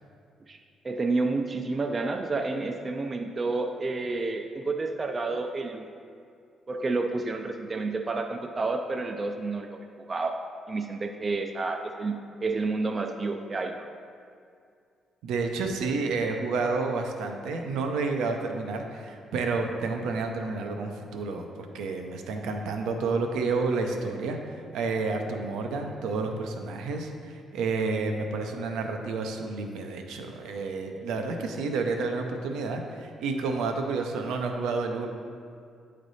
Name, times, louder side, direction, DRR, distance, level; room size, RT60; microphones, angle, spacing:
voice 1, 0.8-5.9 6.7-10.4 10.7-13.9, right 3 dB, 30° right, 5 dB, 0.3 m, -30 dB
voice 2, 15.2-35.1, right 3 dB, 85° right, 4 dB, 0.6 m, -30 dB
8.9 x 3.3 x 4.0 m, 2.3 s
cardioid pair, 90°, 0 cm